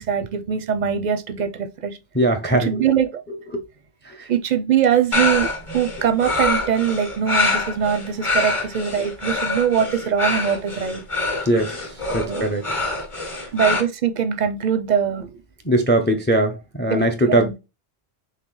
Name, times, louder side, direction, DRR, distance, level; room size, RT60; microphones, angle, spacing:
voice 1, 0.0-2.0 2.6-3.2 4.3-5.5 5.7-11.0 12.3-12.4 13.5-15.3 16.9-17.5, right 8 dB, 55° right, 0.5 m, -22 dB
voice 2, 2.1-2.8 3.5-3.6 4.0-4.3 11.4-12.6 13.2-13.5 15.6-17.6, right 1 dB, 15° left, 0.4 m, -21 dB
sound 1, 5.1-13.8, left 3 dB, 30° left, 0.9 m, -25 dB
4.1 x 3.2 x 3.0 m
omnidirectional pair, 1.1 m